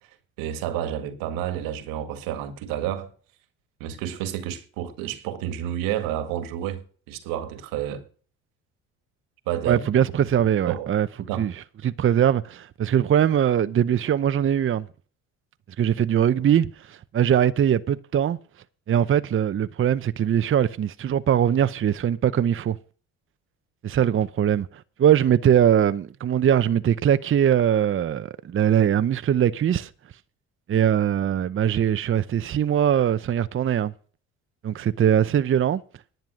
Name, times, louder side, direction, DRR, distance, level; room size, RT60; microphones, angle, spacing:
voice 1, 0.4-3.1 3.8-8.1 9.5-9.8 10.7-10.9 11.2-11.5, right 11 dB, 85° right, 1.9 m, -30 dB
voice 2, 9.6-11.1 11.4-11.5 11.8-14.9 15.8-18.4 18.9-22.7 23.8-29.9 30.7-33.9 34.6-35.8, right 9 dB, 40° right, 0.7 m, -21 dB
11.0 x 8.9 x 6.3 m
supercardioid pair, 80°, 33 cm